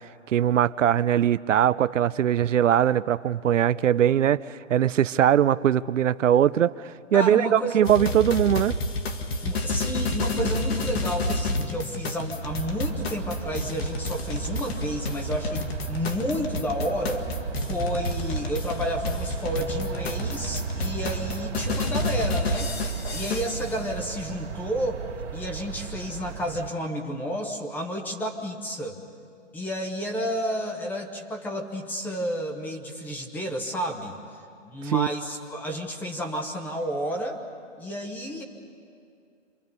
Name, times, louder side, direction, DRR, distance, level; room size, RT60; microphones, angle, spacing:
voice 1, 0.3-6.8 7.1-8.8 34.8-35.1, right 10 dB, 75° right, 16 dB, 0.6 m, -21 dB
voice 2, 7.1-7.8 9.4-17.3 17.6-22.7 23.1-25.1 25.3-29.0 29.5-34.1 34.6-37.4 37.8-38.4, equal, 5° left, 3 dB, 0.8 m, -31 dB
sound 1, 7.8-23.8, left 2 dB, 55° left, 1.9 m, -30 dB
sound 2, 12.4-26.7, right 8 dB, 60° right, 2.3 m, -35 dB
27.0 x 22.0 x 5.4 m, 2.3 s
hypercardioid pair, 150°, 38 cm